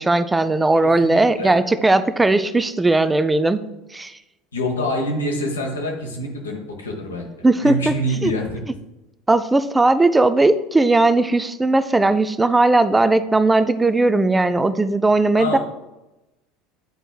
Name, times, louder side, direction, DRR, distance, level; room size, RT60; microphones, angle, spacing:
voice 1, 0.0-3.6 3.9-4.1 7.4-7.9 8.2-8.3 9.3-15.6, right 2 dB, 15° right, 12 dB, 0.4 m, -17 dB
voice 2, 1.0-1.6 4.5-7.3 7.6-8.7 15.3-15.6, equal, 85° left, 1 dB, 1.1 m, -26 dB
9.4 x 4.4 x 2.3 m, 1.0 s
figure-of-eight pair, 70°, 0 cm